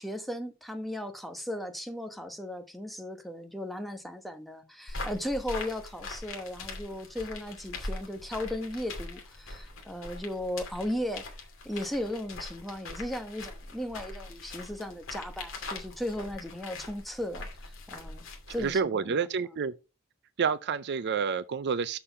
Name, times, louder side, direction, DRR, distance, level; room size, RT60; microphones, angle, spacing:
voice 1, 0.0-11.2 11.6-19.5, left 1 dB, ahead, 1.0 m, -36 dB
sound 1, 4.9-18.8, left 2 dB, 65° left, 2.5 m, -42 dB
voice 2, 18.6-19.7 20.4-22.0, right 6 dB, 55° right, 0.5 m, -29 dB
6.7 x 5.7 x 5.5 m
head